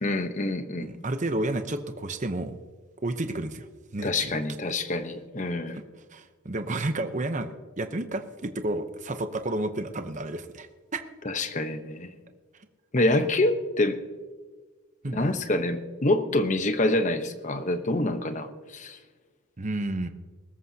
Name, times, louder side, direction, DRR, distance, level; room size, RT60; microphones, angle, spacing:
voice 1, 0.0-0.9 4.0-5.8 11.2-12.1 12.9-14.0 15.1-19.0, left 2 dB, 35° left, 9 dB, 0.9 m, -26 dB
voice 2, 0.8-2.6 3.0-3.7 3.9-4.4 5.7-5.8 6.1-7.5 7.8-11.0 15.0-15.2 19.6-20.1, right 2 dB, 35° right, 8 dB, 0.8 m, -31 dB
21.5 x 13.5 x 2.8 m, 1.4 s
head